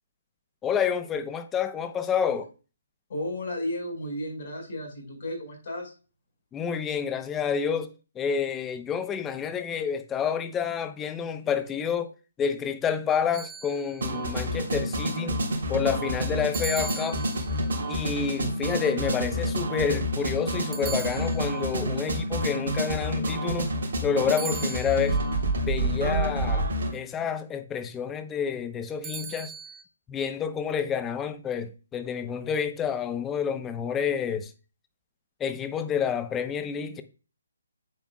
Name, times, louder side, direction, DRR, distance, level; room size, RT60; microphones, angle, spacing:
voice 1, 0.6-2.5 6.5-12.1 12.4-15.4 15.7-17.2 17.9-23.7 24.0-25.2 25.7-29.5 30.1-34.5 35.4-37.0, left 7 dB, 15° left, 0.8 m, -29 dB
voice 2, 3.1-5.9, left 1 dB, 50° left, 5.1 m, -33 dB
sound 1, 13.3-14.2 16.5-17.8 20.7-21.8 24.3-25.3 29.0-29.8, right 6 dB, 15° right, 1.0 m, -39 dB
sound 2, 14.0-26.9, right 1 dB, 60° right, 3.3 m, -28 dB
10.5 x 8.1 x 2.3 m
figure-of-eight pair, 145°, 0 cm